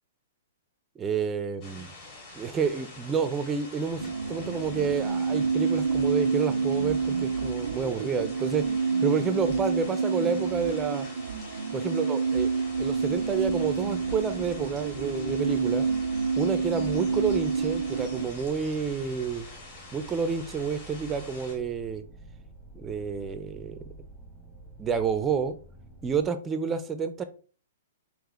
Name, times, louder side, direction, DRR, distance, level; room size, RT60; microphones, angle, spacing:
voice 1, 1.0-1.9 2.3-11.1 11.7-12.5 12.8-15.9 16.3-19.5 19.9-22.0 22.7-23.8 24.8-25.6 26.0-27.2, right 6 dB, 15° right, 10 dB, 0.4 m, -29 dB
sound 1, 1.6-21.5, left 2 dB, 40° left, 1.9 m, -46 dB
sound 2, 4.0-18.3, right 5 dB, 90° right, 0.3 m, -28 dB
sound 3, 12.6-26.3, right 2 dB, 10° left, 0.9 m, -49 dB
3.9 x 3.0 x 3.0 m, 0.38 s
hypercardioid pair, 145°, 0 cm